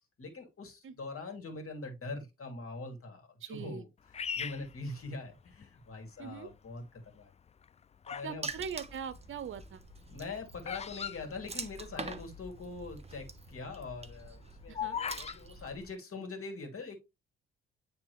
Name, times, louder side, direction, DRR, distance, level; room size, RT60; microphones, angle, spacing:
voice 1, 0.2-3.9 4.4-7.3 8.1-8.5 10.1-17.0, left 3 dB, 45° left, 2.4 m, -43 dB
voice 2, 3.4-3.8 6.2-6.5 8.2-9.8 14.7-15.0, right 7 dB, 45° right, 0.8 m, -41 dB
Bird vocalization bird call bird song, 4.1-5.7 6.3-6.7 7.5-8.4 8.7-12.2 12.4-12.5 12.7-13.1 13.5-15.4, left 7 dB, 25° left, 0.4 m, -39 dB
Water / Splash splatter, 8.4-15.9, right 3 dB, 20° right, 1.1 m, -45 dB
9.0 x 3.4 x 3.1 m
hypercardioid pair, 45°, 30 cm